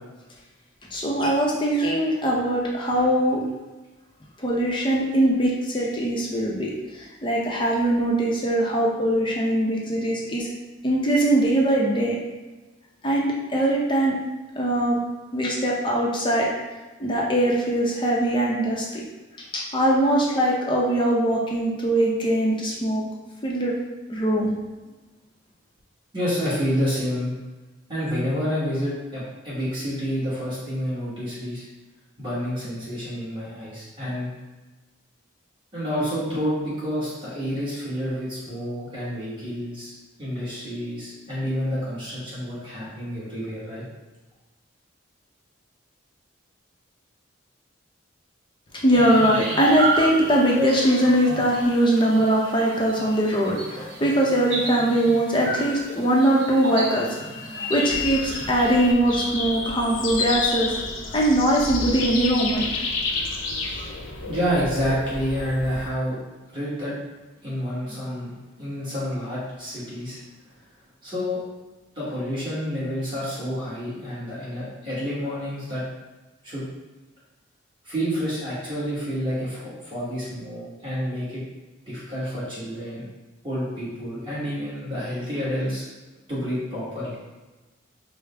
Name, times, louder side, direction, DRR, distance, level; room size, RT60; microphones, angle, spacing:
voice 1, 0.9-3.4 4.4-6.7 7.2-10.5 10.8-12.2 13.0-14.2 14.6-15.0 15.3-16.5 17.0-18.9 19.5-23.0 23.4-23.8 24.1-24.5 48.7-60.8 61.1-62.7 63.8-63.9, right 1 dB, 25° left, -3 dB, 0.6 m, -21 dB
voice 2, 26.1-27.3 27.9-31.6 32.2-34.3 35.7-39.9 40.2-43.8 64.2-66.2 66.5-66.9 67.4-68.3 68.6-70.2 71.0-71.4 71.9-75.8 76.4-76.6 77.8-81.4 81.9-83.0 83.4-85.8 86.3-87.1, equal, 25° right, -10 dB, 1.3 m, -29 dB
sound 1, 48.9-58.9, right 1 dB, 60° right, 0.7 m, -30 dB
sound 2, 57.9-65.9, left 3 dB, 75° left, 0.5 m, -30 dB
4.9 x 2.0 x 3.4 m, 1.2 s
head